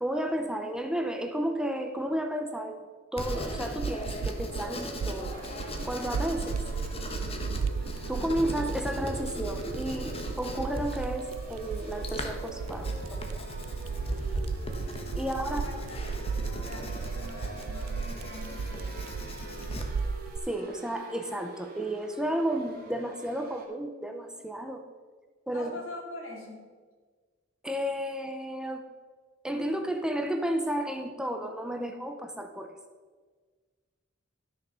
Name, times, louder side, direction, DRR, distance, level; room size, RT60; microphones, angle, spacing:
voice 1, 0.0-2.8 3.1-5.4 5.8-6.6 8.1-13.4 15.1-15.6 20.5-24.8 25.5-25.7 27.6-28.8 29.4-32.7, right 1 dB, 5° right, 5 dB, 0.7 m, -32 dB
Writing, 3.2-19.8, left 1 dB, 30° left, 1.2 m, -39 dB
sound 1, 3.2-20.4, right 5 dB, 85° right, 0.4 m, -35 dB
sound 2, 5.3-23.6, right 2 dB, 50° right, 2.0 m, -46 dB
voice 2, 15.2-16.0 16.2-19.1 25.5-26.7, left 1 dB, 80° left, 0 dB, 2.6 m, -44 dB
12.5 x 6.4 x 5.6 m, 1.5 s
head